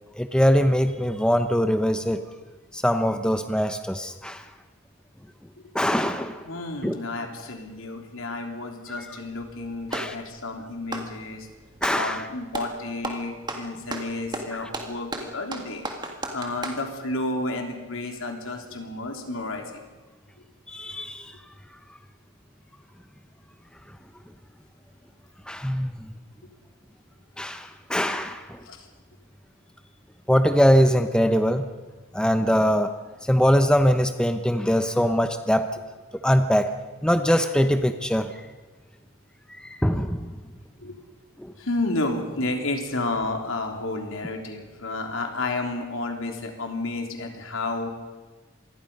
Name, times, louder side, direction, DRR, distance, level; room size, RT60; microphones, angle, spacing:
voice 1, 0.2-2.2 2.7-4.5 5.7-6.4 6.8-7.0 9.9-10.1 11.8-12.3 14.6-14.7 20.7-21.3 25.5-26.1 27.4-28.6 30.3-31.7 32.1-32.9 33.2-35.7 36.1-36.7 37.0-38.3 39.5-40.3 41.4-41.5, equal, 5° left, 8 dB, 0.8 m, -22 dB
voice 2, 6.4-11.5 11.9-15.9 16.3-19.8 28.6-28.9 40.8-41.0 41.6-47.9, left 2 dB, 75° left, 3 dB, 3.4 m, -31 dB
Clapping, 9.2-10.2 10.8-12.0 12.5-12.8 13.0-16.8, right 2 dB, 20° right, 1.8 m, -34 dB
26.0 x 21.0 x 5.5 m, 1.3 s
head